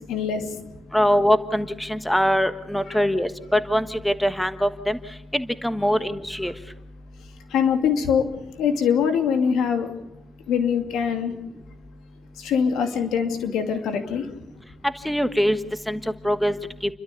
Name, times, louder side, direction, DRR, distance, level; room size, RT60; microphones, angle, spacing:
voice 1, 0.1-0.4 2.9-3.0 7.5-8.3 8.6-9.9 10.5-11.3 12.4-14.3, left 7 dB, 85° left, 6 dB, 2.5 m, -23 dB
voice 2, 0.9-5.0 5.3-6.5 15.0-15.6 15.9-16.0 16.2-16.5, equal, 5° left, 10 dB, 1.4 m, -22 dB
29.5 x 12.5 x 8.4 m, 0.92 s
cardioid pair, 90°, 0 cm